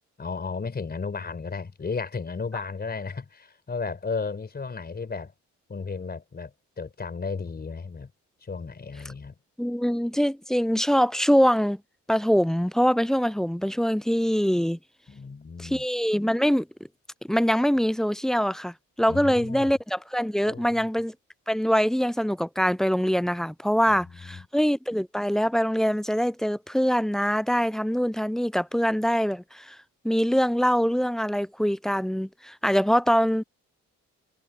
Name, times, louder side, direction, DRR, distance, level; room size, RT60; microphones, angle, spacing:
voice 1, 0.2-5.3 5.7-6.5 6.8-8.1 8.4-9.3 15.1-15.8 19.1-19.7 20.4-20.9 24.0-24.4, left 4 dB, 30° left, 4.4 m, -34 dB
voice 2, 9.6-11.8 12.1-14.8 15.6-16.7 17.3-21.1 21.5-29.8 30.0-33.4, equal, ahead, 0.3 m, -24 dB
cardioid pair, 90°, 30 cm